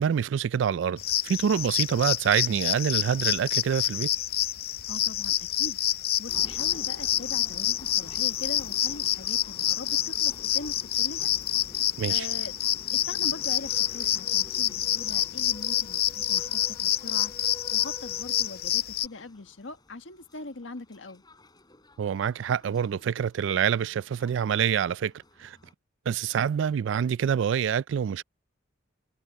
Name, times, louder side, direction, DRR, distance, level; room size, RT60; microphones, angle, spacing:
voice 1, 0.0-4.1 12.0-12.3 22.0-25.1 25.4-25.6 26.1-28.2, right 8 dB, 70° right, 0.3 m, -26 dB
sound 1, 1.0-19.1, left 13 dB, 55° left, 0.6 m, -28 dB
voice 2, 4.9-5.8 6.2-11.3 12.1-12.5 12.9-17.3 17.7-21.2, left 2 dB, 75° left, 1.6 m, -41 dB
sound 2, 6.3-25.7, left 1 dB, 20° left, 4.4 m, -50 dB
head